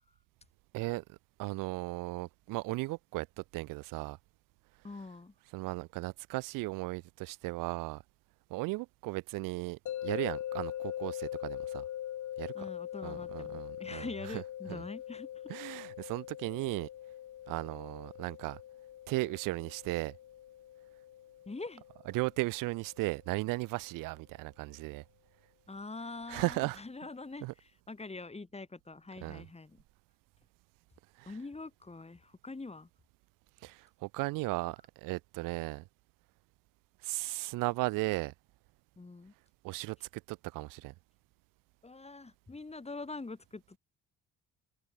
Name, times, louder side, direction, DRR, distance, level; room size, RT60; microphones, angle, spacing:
voice 1, 0.7-4.2 5.5-8.0 8.5-11.8 12.4-12.6 13.0-14.1 14.3-14.4 14.7-14.8 15.5-16.9 17.5-18.6 19.1-20.1 22.1-25.0 26.3-26.8 27.4-27.5 29.2-29.4 31.2-31.3 33.6-35.8 37.0-38.3 39.6-40.9, right 22 dB, 85° right, 2.8 m, -36 dB
voice 2, 4.8-5.3 12.5-15.5 21.5-21.8 25.7-29.8 31.3-32.9 39.0-39.3 41.8-43.8, left 3 dB, 20° left, 3.7 m, -44 dB
sound 1, 9.9-22.9, left 12 dB, 65° left, 3.4 m, -42 dB
supercardioid pair, 70°, 32 cm